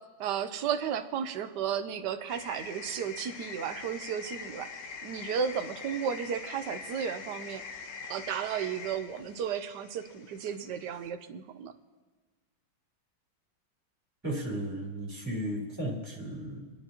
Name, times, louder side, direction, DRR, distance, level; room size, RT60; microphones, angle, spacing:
voice 1, 0.2-4.7 5.0-7.6 8.0-11.7, right 8 dB, 65° right, 9 dB, 1.3 m, -34 dB
sound 1, 2.3-11.1, left 5 dB, 60° left, 0.8 m, -44 dB
voice 2, 14.2-16.7, right 1 dB, 10° right, -3 dB, 3.3 m, -35 dB
30.0 x 10.0 x 2.9 m, 1.4 s
omnidirectional pair, 2.1 m